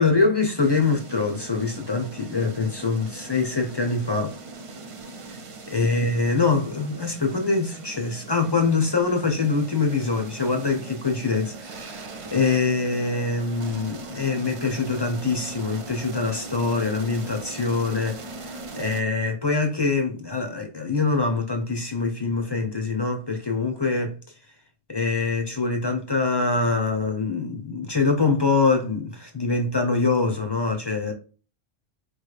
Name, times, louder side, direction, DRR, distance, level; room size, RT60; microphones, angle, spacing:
voice 1, 0.0-4.3 5.3-5.4 5.7-24.1 24.9-31.1, left 4 dB, 25° left, 0.7 m, -24 dB
sound 1, 0.6-19.0, right 3 dB, 50° right, 0.4 m, -40 dB
4.6 x 3.2 x 2.3 m
omnidirectional pair, 1.2 m